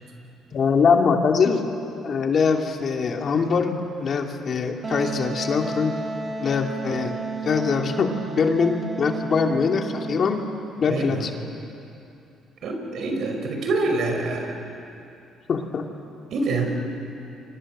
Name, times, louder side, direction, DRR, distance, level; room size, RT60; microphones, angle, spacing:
voice 1, 0.5-1.6 2.0-6.0 6.4-7.2 7.4-10.4 10.8-11.3 15.5-15.9, left 5 dB, 50° left, 3 dB, 2.7 m, -23 dB
Wind instrument woodwind instrument, 4.8-10.4, right 4 dB, 30° right, 1.8 m, -32 dB
voice 2, 10.9-11.3 12.6-14.6 16.3-16.7, right 3 dB, 65° right, 3 dB, 5.4 m, -26 dB
29.0 x 25.0 x 7.6 m, 2.7 s
cardioid pair, 85°, 0 cm